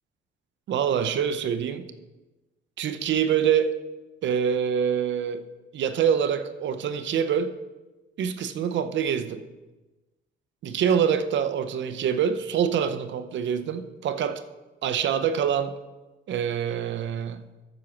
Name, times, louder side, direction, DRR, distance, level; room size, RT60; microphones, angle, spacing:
voice 1, 0.7-1.9 2.8-3.8 4.2-5.4 5.7-7.5 8.2-9.4 10.6-14.4 14.8-15.8 16.3-17.4, right 8 dB, 70° right, 0.7 m, -25 dB
7.8 x 6.2 x 7.1 m
cardioid pair, 90°, 20 cm